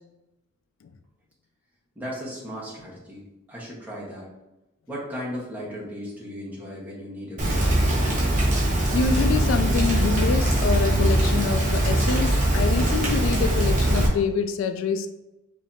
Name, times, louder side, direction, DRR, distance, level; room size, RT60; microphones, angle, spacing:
voice 1, 1.9-3.2 3.5-4.3 4.9-7.6, equal, 10° right, -6 dB, 1.2 m, -36 dB
Rain, 7.4-14.1, right 1 dB, 40° right, 1.1 m, -21 dB
voice 2, 8.9-15.1, left 5 dB, 80° left, 9 dB, 0.3 m, -26 dB
4.9 x 2.8 x 2.6 m, 0.98 s
head